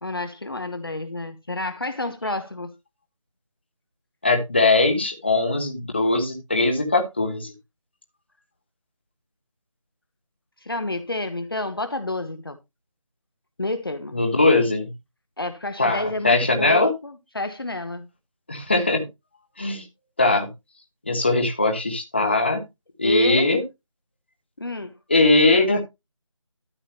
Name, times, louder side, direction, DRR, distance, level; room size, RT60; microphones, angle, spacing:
voice 1, 0.0-2.7 10.6-12.6 13.6-14.2 15.4-18.1 23.0-23.5 24.6-24.9, left 2 dB, 45° left, 1.0 m, -29 dB
voice 2, 4.2-7.5 14.1-14.9 15.8-16.9 18.5-19.0 19.6-19.8 20.2-20.5 21.0-22.6 23.0-23.6 25.1-25.8, left 2 dB, 20° left, 1.2 m, -20 dB
13.0 x 7.2 x 2.9 m
figure-of-eight pair, 180°, 17 cm